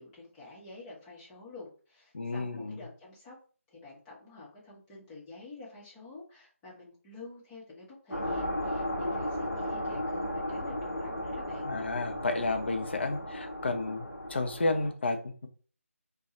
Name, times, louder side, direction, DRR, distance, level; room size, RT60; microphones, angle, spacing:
voice 1, 0.0-3.4 3.7-11.7, left 2 dB, 10° left, 0.9 m, -49 dB
voice 2, 2.1-2.8 11.6-15.5, left 2 dB, 50° left, 0.6 m, -32 dB
sound 1, 8.1-14.9, left 1 dB, 85° left, 1.0 m, -35 dB
4.3 x 2.3 x 3.0 m
figure-of-eight pair, 155°, 8 cm